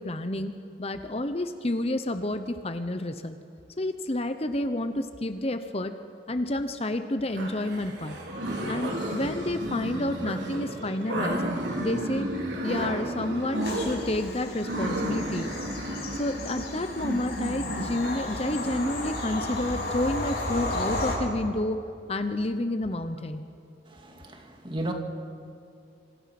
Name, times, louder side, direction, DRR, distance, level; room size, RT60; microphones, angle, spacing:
voice 1, 0.0-3.4 3.8-6.0 6.3-8.2 8.6-11.4 11.8-12.3 12.6-15.5 16.1-21.8 22.1-23.5, left 1 dB, 35° left, 9 dB, 1.0 m, -30 dB
sound 1, 7.3-20.8, right 1 dB, 75° right, 4.3 m, -33 dB
Bird vocalization bird call bird song / Train, 13.6-21.1, left 2 dB, 60° left, 8.0 m, -34 dB
voice 2, 23.9-24.9, right 1 dB, 30° right, 3 dB, 2.4 m, -35 dB
27.0 x 26.0 x 6.1 m, 2.6 s
head